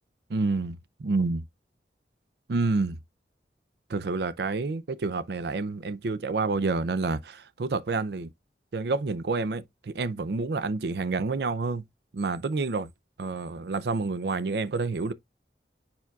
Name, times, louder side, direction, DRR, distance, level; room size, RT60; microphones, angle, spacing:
voice 1, 0.3-1.4 2.5-3.0 3.9-8.3 8.7-11.8 12.1-12.9 13.2-15.1, right 3 dB, 70° right, 0.5 m, -28 dB
6.9 x 5.9 x 2.3 m
head